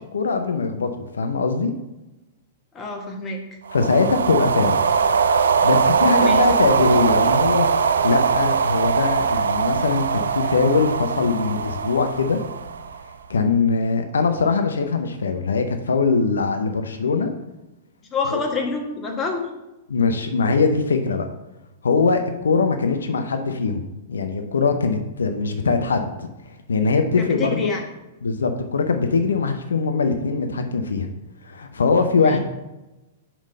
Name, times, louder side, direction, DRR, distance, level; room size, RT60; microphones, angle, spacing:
voice 1, 0.1-1.7 3.7-4.8 5.6-7.7 8.0-12.4 13.3-17.3 18.3-18.4 19.9-21.3 21.8-23.8 24.1-26.3 26.7-27.7 28.2-31.1 31.4-32.4, left 4 dB, 75° left, 6 dB, 0.6 m, -21 dB
voice 2, 2.7-3.4 6.2-6.4 18.1-19.5 27.2-27.8 32.2-32.4, left 3 dB, 25° left, 2 dB, 1.4 m, -27 dB
sound 1, 3.7-13.2, right 6 dB, 75° right, 0.4 m, -21 dB
5.5 x 5.0 x 5.3 m, 0.99 s
figure-of-eight pair, 105°, 0 cm